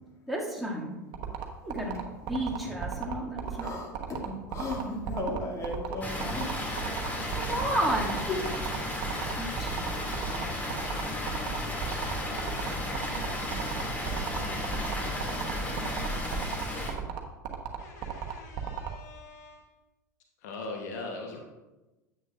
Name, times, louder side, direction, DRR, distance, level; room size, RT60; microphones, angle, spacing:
voice 1, 0.3-0.9 1.6-2.0 2.3-3.8 6.9-8.2 9.3-9.9, right 1 dB, ahead, -3 dB, 2.2 m, -32 dB
sound 1, 1.1-18.9, right 9 dB, 50° right, 1.1 m, -35 dB
voice 2, 1.6-2.1 3.4-6.9 8.3-9.3, left 2 dB, 35° left, -2 dB, 2.4 m, -38 dB
Water, 6.0-16.9, left 1 dB, 15° left, 2.4 m, -33 dB
voice 3, 17.8-19.6 20.4-21.4, left 3 dB, 65° left, 1 dB, 1.1 m, -41 dB
9.5 x 8.8 x 2.5 m, 1.1 s
hypercardioid pair, 80°, 9 cm